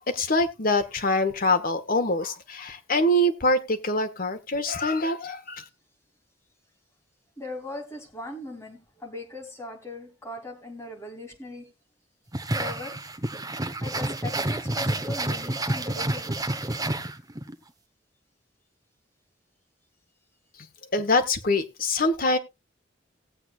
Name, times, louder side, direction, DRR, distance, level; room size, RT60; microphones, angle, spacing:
voice 1, 0.1-5.6 20.9-22.4, left 1 dB, 50° left, 7 dB, 1.3 m, -24 dB
voice 2, 7.4-11.7 12.5-13.0 13.8-16.4, left 2 dB, 15° left, 1 dB, 2.9 m, -39 dB
sound 1, 12.3-17.5, right 1 dB, 20° right, 0.9 m, -29 dB
18.5 x 8.1 x 2.4 m, 0.23 s
head